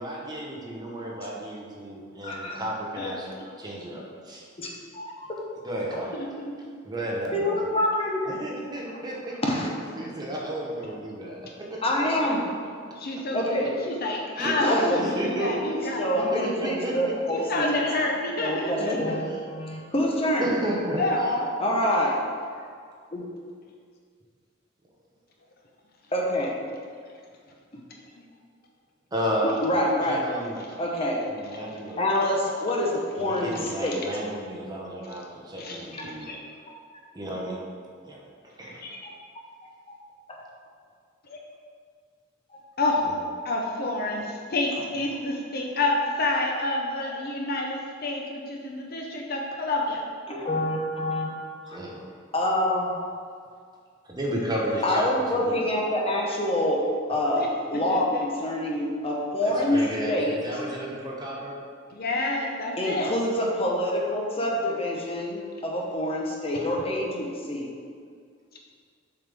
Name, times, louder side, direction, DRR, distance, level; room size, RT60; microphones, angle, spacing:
voice 1, 0.0-3.3 3.6-4.5 5.6-6.1 6.8-7.7 8.3-9.4 9.9-11.8 14.3-17.1 18.0-18.3 18.6-19.5 20.4-21.3 29.1-29.7 30.0-30.6 31.3-32.4 33.2-36.3 37.1-37.6 38.0-38.2 38.6-38.8 43.0-43.1 51.7-52.0 54.1-55.6 59.4-61.5, right 1 dB, 20° right, -3 dB, 1.1 m, -33 dB
voice 2, 2.2-2.7 4.6-4.7 4.9-5.4 7.3-8.4 9.4-9.7 11.8-12.4 13.3-13.7 14.6-15.1 16.0-17.8 18.4-20.5 21.6-22.2 23.1-23.2 26.1-26.5 27.7-27.8 29.6-30.2 30.8-31.2 32.0-34.0 35.9-36.0 39.0-39.1 39.9-40.0 42.5-42.6 50.3-51.3 51.7-51.8 52.3-52.9 54.8-56.8 57.1-57.4 57.7-60.4 62.8-67.7, left 1 dB, 30° left, -2 dB, 1.0 m, -26 dB
voice 3, 6.1-6.5 13.0-16.1 17.3-19.2 21.0-21.5 35.6-36.4 38.8-39.0 41.3-41.4 42.8-43.0 43.4-50.0 57.3-57.5 57.9-58.2 61.9-63.1, left 2 dB, 50° left, 0 dB, 0.8 m, -28 dB
7.1 x 5.7 x 3.6 m, 2.1 s
head